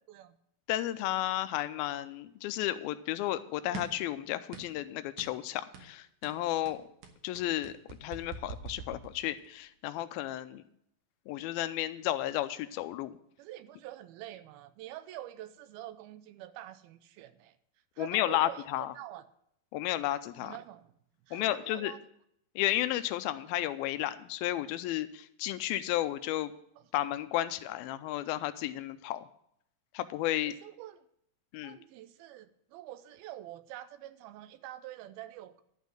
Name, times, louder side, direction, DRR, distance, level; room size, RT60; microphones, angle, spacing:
voice 1, 0.7-6.8 7.2-10.6 11.3-13.2 18.0-18.9 19.7-20.5 21.3-21.9 22.6-26.5 26.9-29.2 29.9-30.5 31.5-31.8, left 14 dB, 85° left, 12 dB, 2.4 m, -33 dB
sound 1, 3.7-4.1 4.5-4.8 5.2-5.4 5.7-5.9 6.2-9.6, right 5 dB, 65° right, 2.3 m, -45 dB
voice 2, 13.4-17.6 18.0-19.2 20.4-20.9 21.3-22.0 26.8-26.9 30.5-31.1 31.6-35.6, right 13 dB, 85° right, 13 dB, 2.5 m, -46 dB
11.5 x 5.5 x 7.6 m, 0.71 s
omnidirectional pair, 4.3 m